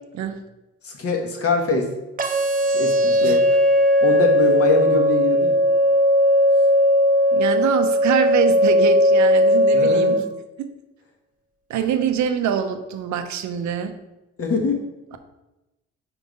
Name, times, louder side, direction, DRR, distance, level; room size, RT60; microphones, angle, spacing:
voice 1, 0.8-1.9 2.7-3.5 4.0-5.6 9.7-10.2 14.4-14.8, left 3 dB, 50° left, 2 dB, 1.3 m, -23 dB
sound 1, 2.2-10.2, equal, 30° right, 0.7 m, -17 dB
voice 2, 7.3-10.2 10.6-10.7 11.7-13.9, right 8 dB, 70° right, 8 dB, 0.7 m, -24 dB
4.8 x 3.8 x 5.2 m, 1.0 s
cardioid pair, 90°, 30 cm